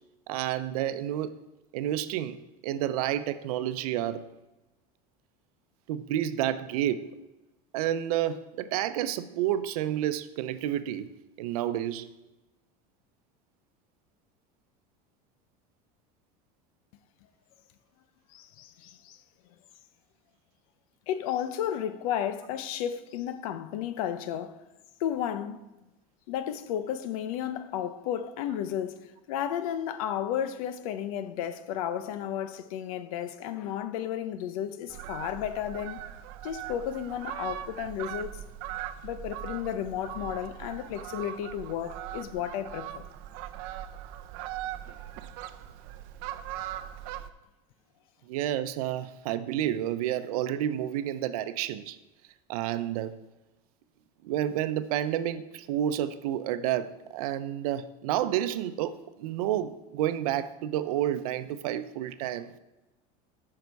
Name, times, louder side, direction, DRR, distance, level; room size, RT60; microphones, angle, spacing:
voice 1, 0.3-1.3 1.7-4.2 5.9-7.1 7.7-11.1 11.4-12.1 48.3-52.0 52.5-53.2 54.2-62.6, right 11 dB, 85° right, 0.7 m, -30 dB
voice 2, 18.3-19.2 21.1-24.6 25.0-25.6 26.3-29.0 29.3-36.0 36.4-38.4 39.0-43.1, left 10 dB, 75° left, 0.9 m, -33 dB
Fowl, 34.9-47.3, right 12 dB, 55° right, 0.7 m, -40 dB
13.5 x 5.8 x 4.7 m
cardioid pair, 165°, 18 cm